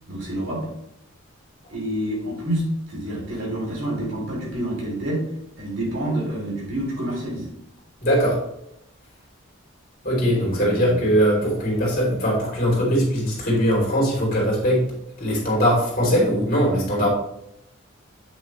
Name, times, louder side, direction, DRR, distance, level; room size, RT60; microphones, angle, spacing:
voice 1, 0.1-0.7 1.7-5.3 5.6-7.5 10.4-11.0, right 1 dB, 60° right, -3 dB, 3.2 m, -28 dB
voice 2, 8.0-8.4 10.0-14.8 15.2-17.1, equal, 45° left, -3 dB, 3.3 m, -20 dB
8.3 x 6.7 x 3.2 m, 0.77 s
head